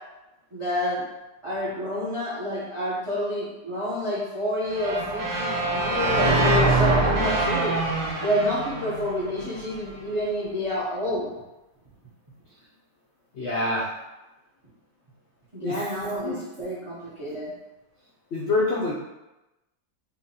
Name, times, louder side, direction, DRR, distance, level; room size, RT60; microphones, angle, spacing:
voice 1, 0.5-1.0 1.4-7.7 8.2-11.3 15.5-17.5, left 1 dB, 45° right, -7 dB, 0.4 m, -28 dB
sound 1, 4.7-9.7, right 2 dB, 80° right, 1.6 m, -24 dB
voice 2, 13.3-13.9 15.6-15.8 16.2-16.4 18.3-19.0, left 2 dB, 80° left, -4 dB, 0.6 m, -25 dB
5.6 x 2.1 x 2.8 m, 0.99 s
omnidirectional pair, 1.8 m